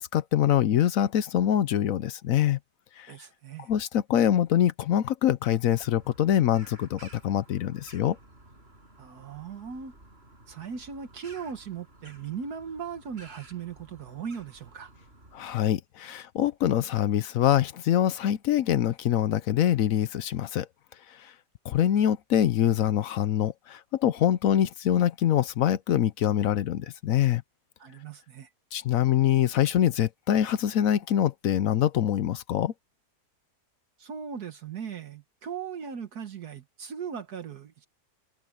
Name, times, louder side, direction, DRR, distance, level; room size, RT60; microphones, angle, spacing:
voice 1, 0.0-2.6 3.0-3.1 3.7-8.2 15.3-20.7 21.1-21.3 21.6-27.4 28.7-32.7, left 11 dB, 65° left, 1.0 m, -24 dB
voice 2, 3.1-3.7 9.0-9.9 10.5-14.9 27.8-28.5 34.0-37.8, right 7 dB, 70° right, 1.8 m, -38 dB
Bird vocalization bird call bird song, 5.7-15.5, right 2 dB, 35° right, 7.7 m, -53 dB
omnidirectional pair, 1.7 m